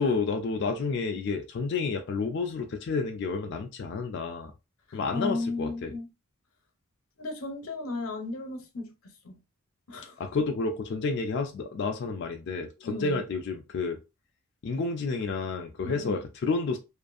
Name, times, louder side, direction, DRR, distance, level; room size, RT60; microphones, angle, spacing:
voice 1, 0.0-4.5 4.9-5.9 10.2-14.0 14.6-16.8, left 4 dB, 50° left, 0.3 m, -30 dB
voice 2, 4.9-6.1 7.2-9.4 9.9-10.2 12.8-13.2 15.8-16.2, left 2 dB, 70° left, 0.7 m, -35 dB
2.5 x 2.4 x 2.4 m
head